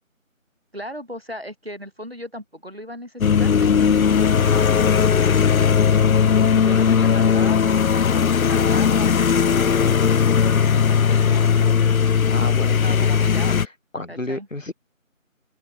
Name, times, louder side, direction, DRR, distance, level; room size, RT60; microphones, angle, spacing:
voice 1, 0.7-3.9 5.9-12.3 12.8-13.6 14.1-14.5, equal, 45° right, 1.6 m, -37 dB
sound 1, 3.2-13.7, left 7 dB, 85° left, 0.6 m, -18 dB
voice 2, 4.3-4.8 12.2-12.8 13.2-14.7, left 2 dB, 65° left, 1.6 m, -32 dB
open air
figure-of-eight pair, 180°, 41 cm